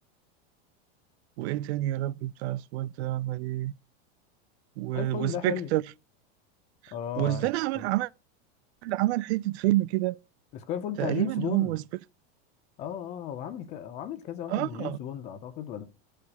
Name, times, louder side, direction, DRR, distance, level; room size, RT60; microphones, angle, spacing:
voice 1, 1.4-3.7 4.8-5.8 6.8-8.1 8.8-10.2 11.0-11.8 14.5-15.0, right 16 dB, 85° right, 0.5 m, -28 dB
voice 2, 4.9-5.7 6.9-7.5 10.5-11.8 12.8-15.8, left 9 dB, 20° left, 0.4 m, -35 dB
13.5 x 4.9 x 4.0 m
supercardioid pair, 180°, 32 cm